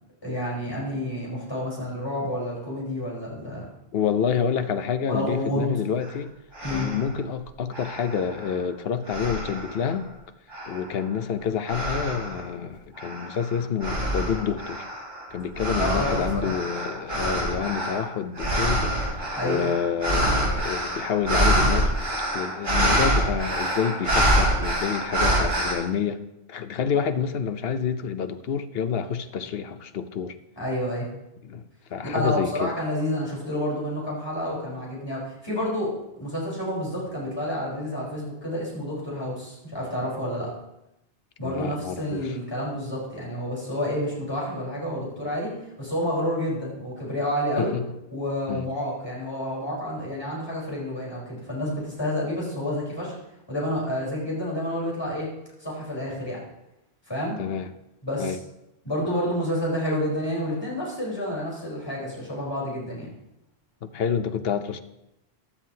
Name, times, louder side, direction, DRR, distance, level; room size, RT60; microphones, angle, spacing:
voice 1, 0.2-3.6 5.1-5.7 6.6-6.9 15.8-16.5 19.3-19.6 30.6-31.1 32.0-40.5 41.4-47.7 48.1-53.1 53.5-55.3 55.6-56.4 57.1-57.4 58.0-58.4 58.8-63.1, equal, 25° left, 4.2 m, -29 dB
voice 2, 3.9-6.3 6.7-10.1 10.7-14.9 15.3-18.9 19.4-21.9 22.3-26.2 26.5-30.4 31.4-32.7 41.4-42.3 47.6-47.8 48.5-48.7 57.4-57.7 58.2-58.4 63.8-64.8, left 7 dB, 70° left, 0.9 m, -28 dB
sound 1, 6.0-6.1 6.5-7.1 7.7-8.7 9.1-9.9 10.5-11.0 11.7-12.4 13.0-25.7, right 1 dB, 55° right, 4.0 m, -26 dB
15.0 x 11.0 x 2.8 m
omnidirectional pair, 1.1 m